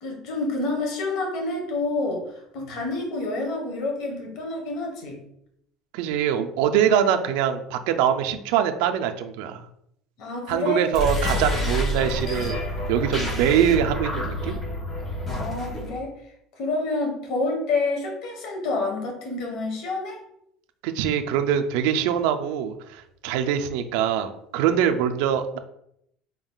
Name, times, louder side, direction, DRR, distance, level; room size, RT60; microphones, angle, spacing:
voice 1, 0.0-2.2 2.5-5.2 10.2-10.9 11.6-11.8 12.1-12.2 15.3-16.1 16.6-20.2, left 3 dB, 65° left, 1 dB, 1.2 m, -28 dB
voice 2, 5.9-9.7 10.5-12.6 12.9-14.6 20.8-25.6, right 9 dB, 80° right, 7 dB, 0.4 m, -23 dB
sound 1, 10.9-15.9, equal, 25° left, 1.2 m, -28 dB
3.9 x 3.6 x 2.3 m, 0.74 s
supercardioid pair, 120°, 0 cm